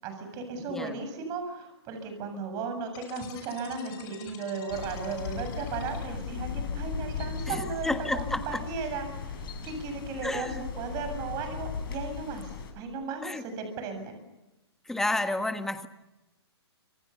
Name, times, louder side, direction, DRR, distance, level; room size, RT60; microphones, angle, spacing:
voice 1, 0.0-10.5 10.8-14.2, right 4 dB, 25° right, 6 dB, 7.6 m, -36 dB
sound 1, 2.9-6.4, left 8 dB, 30° left, 5.7 m, -48 dB
sound 2, 4.7-12.7, left 5 dB, 50° left, 7.7 m, -37 dB
voice 2, 7.5-8.6 10.2-10.6 13.2-13.4 14.8-15.9, left 2 dB, 5° left, 9 dB, 1.5 m, -31 dB
27.5 x 26.5 x 7.0 m, 1.0 s
hypercardioid pair, 150°, 14 cm